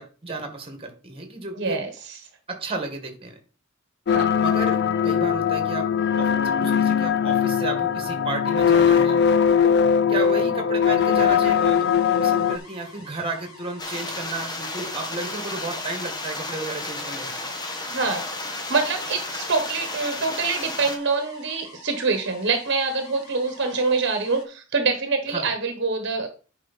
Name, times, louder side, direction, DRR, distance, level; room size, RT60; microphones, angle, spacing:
voice 1, 0.0-1.8 2.5-3.4 4.4-5.9 6.2-9.2 9.6-9.8 10.1-11.9 12.2-17.3 25.3-25.5, right 3 dB, 25° right, 5 dB, 1.8 m, -33 dB
voice 2, 1.6-1.9 4.1-4.3 17.9-26.3, right 4 dB, 55° right, 6 dB, 1.3 m, -25 dB
sound 1, 4.1-12.6, left 7 dB, 50° left, 0.4 m, -20 dB
sound 2, 11.5-24.4, left 2 dB, 85° left, 3.2 m, -47 dB
sound 3, 13.8-21.0, left 2 dB, 20° left, 1.1 m, -33 dB
10.0 x 5.1 x 4.2 m, 0.37 s
head